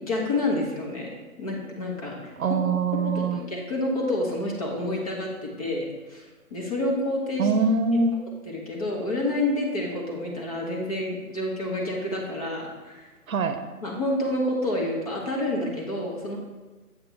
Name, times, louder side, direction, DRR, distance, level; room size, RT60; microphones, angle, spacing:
voice 1, 0.0-1.1 1.4-2.6 2.9-7.5 8.5-13.1 13.8-16.4, left 1 dB, 25° left, -1 dB, 1.2 m, -29 dB
voice 2, 2.4-3.4 7.4-8.2 13.3-13.6, right 3 dB, 70° right, 8 dB, 0.8 m, -23 dB
7.6 x 6.0 x 3.4 m, 1.2 s
hypercardioid pair, 160°, 44 cm